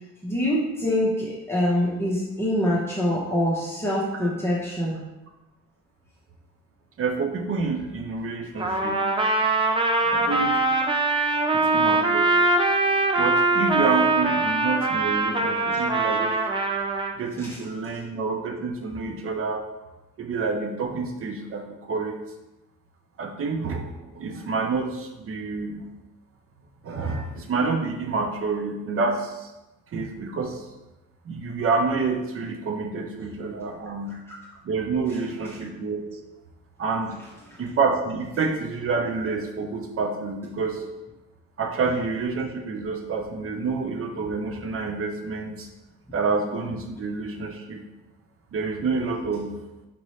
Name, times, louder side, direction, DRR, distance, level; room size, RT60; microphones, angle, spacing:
voice 1, 0.2-5.0 15.7-15.8 17.4-17.6, left 1 dB, 10° left, -7 dB, 0.9 m, -25 dB
voice 2, 7.0-9.0 10.1-10.5 11.5-12.3 13.2-16.4 17.2-19.6 20.2-22.2 23.2-25.8 26.8-29.5 29.9-30.6 31.2-34.1 34.6-36.1 36.8-37.1 37.6-40.8 41.6-45.7 46.1-47.8 48.5-49.5, right 4 dB, 45° right, 3 dB, 0.7 m, -28 dB
Trumpet, 8.6-17.1, right 2 dB, 15° right, 0.4 m, -22 dB
5.2 x 2.6 x 3.1 m, 0.99 s
cardioid pair, 90°, 30 cm